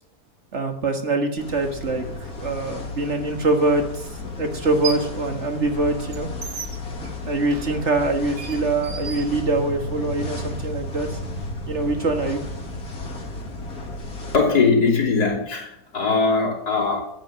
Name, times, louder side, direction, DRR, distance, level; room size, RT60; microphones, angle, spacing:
voice 1, 0.5-4.1 4.4-6.3 7.2-11.1 11.7-12.4, right 2 dB, 45° right, 1.9 m, -24 dB
sound 1, 1.4-14.4, left 2 dB, 65° left, 2.5 m, -33 dB
sound 2, 3.4-3.5 4.5-5.2 5.6-9.9, right 7 dB, 75° right, 2.0 m, -36 dB
voice 2, 14.3-17.1, left 4 dB, 80° left, 3.8 m, -20 dB
13.5 x 9.0 x 7.5 m
omnidirectional pair, 1.7 m